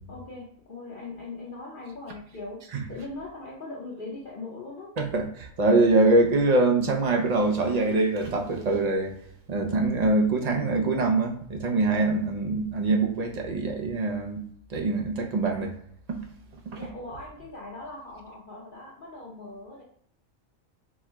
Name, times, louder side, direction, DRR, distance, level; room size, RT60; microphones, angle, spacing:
voice 1, 0.1-4.9 16.7-19.8, left 2 dB, 45° left, -4 dB, 0.8 m, -40 dB
voice 2, 5.0-9.1 9.5-14.4 14.7-15.7 16.1-16.2 16.7-16.8, right 2 dB, 60° right, 2 dB, 0.4 m, -24 dB
4.3 x 2.1 x 4.4 m, 0.66 s
omnidirectional pair, 1.4 m